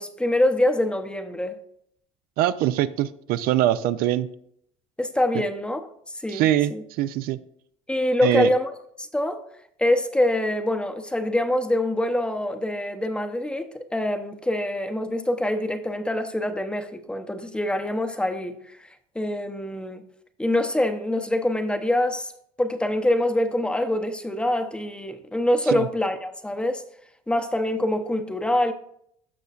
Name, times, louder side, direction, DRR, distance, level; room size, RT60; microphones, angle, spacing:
voice 1, 0.0-1.6 5.0-6.8 7.9-8.7 9.0-9.4 9.8-18.8 19.1-20.0 20.4-22.3 22.6-26.8 27.3-28.7, left 1 dB, 5° left, 0.7 m, -25 dB
voice 2, 2.4-4.3 6.3-7.4 8.2-8.5 25.7-25.9, right 13 dB, 65° right, 0.4 m, -23 dB
14.5 x 5.7 x 2.4 m
cardioid pair, 140°, 16 cm